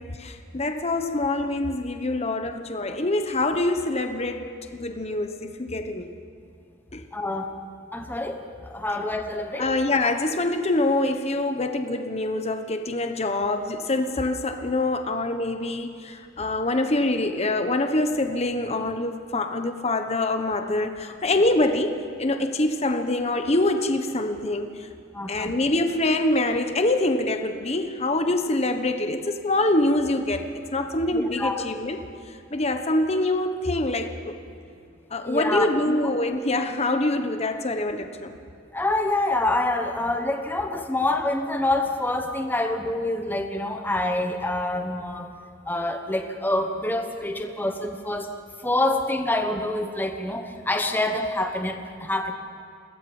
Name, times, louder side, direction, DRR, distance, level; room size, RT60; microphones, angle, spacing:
voice 1, 0.0-6.1 6.9-7.0 9.6-24.9 25.3-32.0 32.3-34.4 35.1-38.4, left 2 dB, 35° left, 7 dB, 1.1 m, -25 dB
voice 2, 7.1-7.5 7.9-9.7 25.1-25.5 31.1-31.6 35.2-36.0 38.7-45.3 45.7-48.3 48.6-52.3, left 2 dB, 10° left, 4 dB, 1.2 m, -26 dB
22.0 x 16.5 x 7.1 m, 2.5 s
head